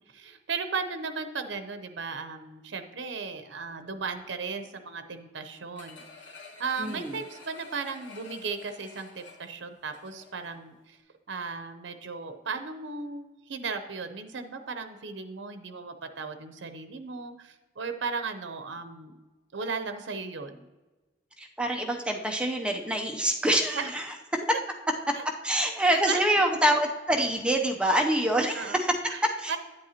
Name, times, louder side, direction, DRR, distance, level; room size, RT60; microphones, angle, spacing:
voice 1, 0.1-6.0 6.6-11.0 11.3-19.1 19.5-20.6 23.7-23.9 25.9-26.2 28.5-28.8 29.1-29.2 29.5-29.6, right 4 dB, 80° right, 8 dB, 0.7 m, -36 dB
sound 1, 5.8-10.5 10.9-11.0, left 4 dB, 80° left, 1.3 m, -50 dB
voice 2, 6.8-7.2 21.4-24.4 25.1-25.2 25.4-29.0 29.2-29.6, right 1 dB, 5° right, 2 dB, 0.6 m, -26 dB
9.5 x 7.7 x 2.9 m, 1.2 s
head